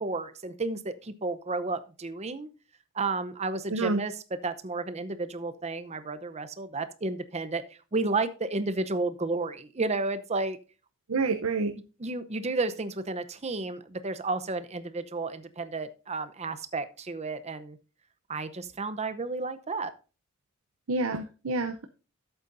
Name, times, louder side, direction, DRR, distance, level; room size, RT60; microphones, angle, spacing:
voice 1, 0.0-2.5 2.9-4.1 4.4-7.6 7.9-10.6 12.0-17.8 18.3-19.9, right 3 dB, 30° right, 11 dB, 0.7 m, -32 dB
voice 2, 3.7-4.0 11.1-11.7 20.9-21.9, right 3 dB, 75° right, 8 dB, 0.7 m, -28 dB
12.0 x 8.0 x 2.6 m, 0.34 s
head